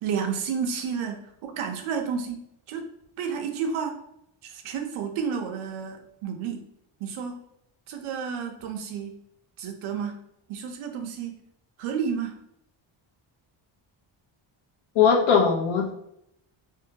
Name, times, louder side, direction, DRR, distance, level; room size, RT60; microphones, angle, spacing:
voice 1, 0.0-2.4 2.7-2.8 3.2-3.9 4.4-6.6 7.0-7.4 7.9-9.1 9.6-10.1 10.5-11.4 11.8-12.3, right 6 dB, 75° right, 4 dB, 0.6 m, -31 dB
voice 2, 15.0-15.9, left 6 dB, 75° left, 2 dB, 0.7 m, -20 dB
2.7 x 2.1 x 2.7 m, 0.75 s
cardioid pair, 180°, 49 cm